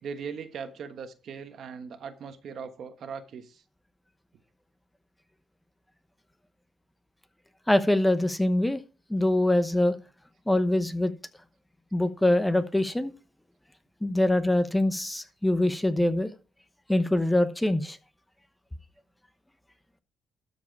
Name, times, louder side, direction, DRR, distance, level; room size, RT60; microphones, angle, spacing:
voice 1, 0.0-3.6, right 6 dB, 65° right, 9 dB, 1.3 m, -39 dB
voice 2, 7.7-8.8 9.1-10.0 10.5-11.1 11.9-13.1 14.0-16.3 16.9-18.0, left 1 dB, 10° left, 11 dB, 0.9 m, -24 dB
12.5 x 4.8 x 4.7 m, 0.35 s
cardioid pair, 90°, 0 cm